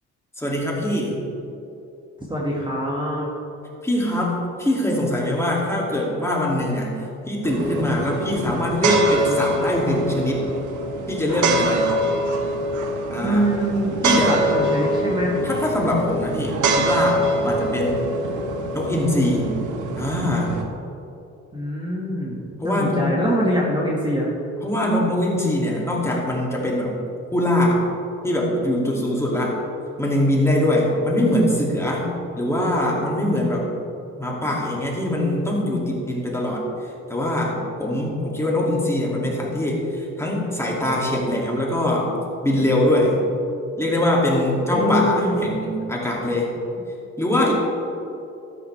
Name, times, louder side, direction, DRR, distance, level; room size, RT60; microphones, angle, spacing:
voice 1, 0.4-1.2 3.8-6.9 7.3-10.5 11.1-11.9 13.1-13.5 14.0-14.4 15.4-18.1 18.7-19.5 20.0-20.6 22.6-23.1 24.6-27.0 27.3-27.8 28.2-29.5 30.0-32.1 32.4-33.7 34.2-36.6 37.1-42.1 42.4-43.2 43.8-46.5 47.2-47.5, left 1 dB, 10° left, -4 dB, 2.6 m, -22 dB
voice 2, 2.3-3.3 13.2-15.5 21.5-22.4 22.6-24.3 41.1-41.2 44.7-45.6, right 1 dB, 15° right, -4 dB, 1.8 m, -24 dB
sound 1, 7.4-20.6, right 1 dB, 80° right, 1.2 m, -24 dB
13.0 x 9.7 x 3.4 m, 2.8 s
cardioid pair, 90°, 30 cm